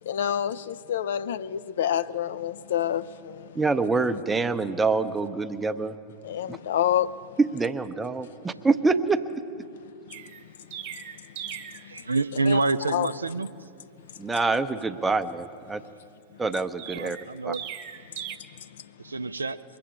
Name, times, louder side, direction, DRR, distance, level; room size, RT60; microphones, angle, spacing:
voice 1, 0.0-3.6 6.2-7.4 10.1-10.2 10.6-12.1 12.5-12.6 12.9-13.1 14.0-14.1 18.1-18.3 18.6-18.9, left 10 dB, 60° left, 0.4 m, -29 dB
voice 2, 3.5-6.0 6.5-6.6 7.4-9.2 14.2-15.8 16.4-17.2 17.4-17.5, right 3 dB, 10° right, 0.6 m, -25 dB
Chirp tweet, 10.1-11.9 16.8-18.4, right 10 dB, 50° right, 0.9 m, -39 dB
voice 3, 11.9-13.5 16.9-17.6 19.0-19.6, right 3 dB, 75° right, 0.4 m, -27 dB
22.0 x 7.6 x 8.5 m
figure-of-eight pair, 90°, 0 cm